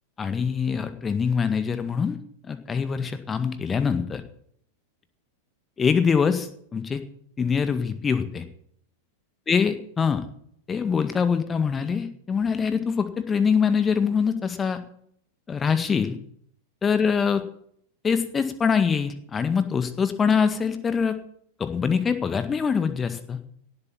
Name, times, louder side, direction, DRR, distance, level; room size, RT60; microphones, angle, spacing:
voice 1, 0.2-2.2 2.4-4.2 5.8-7.0 7.4-8.4 9.5-10.3 10.7-14.8 15.5-16.2 16.8-17.4 18.0-21.2 21.6-23.4, left 6 dB, 20° left, 10 dB, 1.8 m, -24 dB
17.5 x 8.5 x 7.2 m, 0.65 s
figure-of-eight pair, 90°, 0 cm